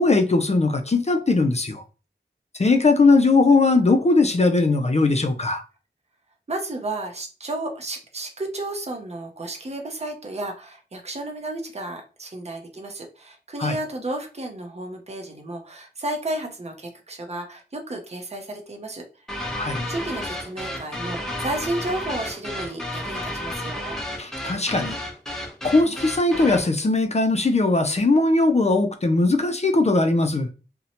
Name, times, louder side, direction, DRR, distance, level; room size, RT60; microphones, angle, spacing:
voice 1, 0.0-1.8 2.6-5.6 13.6-13.8 19.6-19.9 24.2-25.0 25.6-30.5, left 3 dB, 35° left, 0.4 m, -19 dB
voice 2, 6.5-19.0 19.3-24.0, right 2 dB, 35° right, 0.6 m, -32 dB
sound 1, 19.3-26.7, left 1 dB, 5° left, 0.7 m, -32 dB
2.6 x 2.1 x 2.8 m
wide cardioid pair, 45°, 19 cm